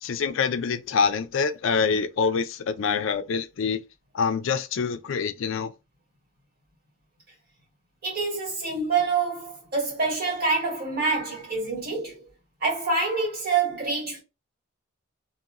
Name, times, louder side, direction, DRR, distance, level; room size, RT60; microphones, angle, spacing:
voice 1, 0.0-3.8 4.1-5.7, left 5 dB, 60° left, 0.4 m, -25 dB
voice 2, 8.0-12.3 12.6-14.2, right 4 dB, 45° right, 1.9 m, -26 dB
2.9 x 2.8 x 2.4 m
head